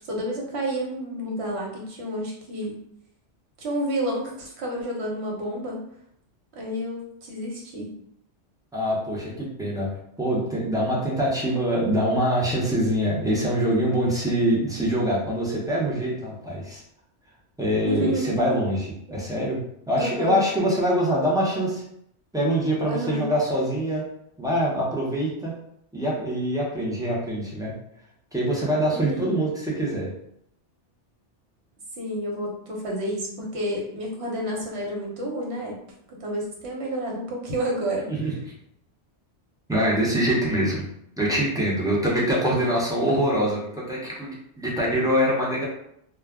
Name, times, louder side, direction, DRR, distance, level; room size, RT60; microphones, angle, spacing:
voice 1, 0.1-2.8 3.6-5.8 6.5-7.9 17.8-18.4 19.1-19.2 20.0-20.4 22.9-23.3 28.9-29.3 32.0-35.8 36.1-38.1, equal, 65° right, -2 dB, 1.1 m, -30 dB
voice 2, 8.7-9.9 10.2-16.8 17.6-19.6 19.9-21.8 22.3-24.0 24.4-25.5 25.9-27.7 28.3-30.1 38.1-38.3 39.7-40.8 41.2-45.6, equal, 5° right, -6 dB, 0.5 m, -24 dB
2.3 x 2.1 x 3.5 m, 0.73 s
omnidirectional pair, 1.2 m